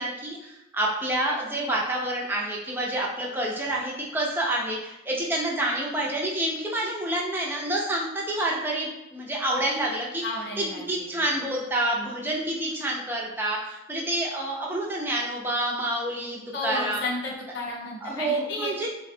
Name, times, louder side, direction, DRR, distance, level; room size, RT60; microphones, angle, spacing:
voice 1, 0.0-10.2 10.6-17.0 18.0-18.9, right 1 dB, 10° right, -3 dB, 0.4 m, -28 dB
voice 2, 10.2-11.2 16.5-18.7, left 2 dB, 60° left, -1 dB, 0.6 m, -33 dB
3.4 x 2.1 x 2.6 m, 0.94 s
head